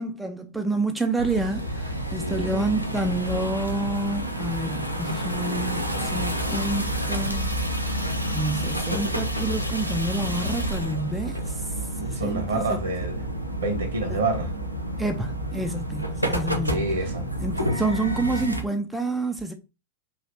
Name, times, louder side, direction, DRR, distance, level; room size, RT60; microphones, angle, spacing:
voice 1, 0.0-7.5 8.3-12.8 14.1-14.2 15.0-16.8 17.4-19.5, right 2 dB, 5° right, 0.4 m, -29 dB
sound 1, 1.2-18.6, right 1 dB, 90° right, 0.6 m, -29 dB
voice 2, 2.2-2.7 12.0-13.2 13.6-14.5 16.7-17.2, right 2 dB, 65° right, 1.2 m, -28 dB
3.0 x 2.7 x 3.0 m
figure-of-eight pair, 90°, 0 cm